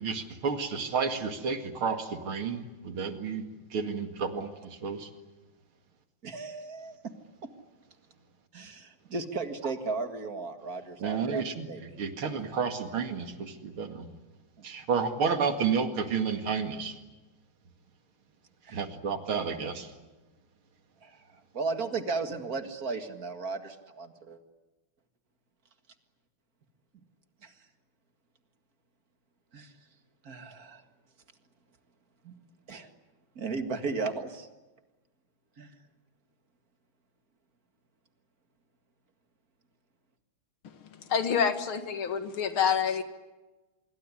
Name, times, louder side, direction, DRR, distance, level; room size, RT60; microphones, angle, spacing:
voice 1, 0.0-3.4 3.7-5.1 11.0-11.7 12.0-14.1 14.6-17.0 18.7-19.9, right 5 dB, 80° right, 7 dB, 3.0 m, -31 dB
voice 2, 6.2-7.0 8.5-11.4 11.7-11.8 12.3-12.5 18.7-18.8 21.0-24.4 27.4-27.5 29.5-29.7 30.2-30.8 32.2-32.3 32.7-32.9 33.4-34.5 35.6-35.7, right 4 dB, 45° right, 8 dB, 2.3 m, -35 dB
voice 3, 40.6-43.0, left 7 dB, 75° left, 9 dB, 2.6 m, -28 dB
25.5 x 23.0 x 9.9 m, 1.1 s
omnidirectional pair, 2.3 m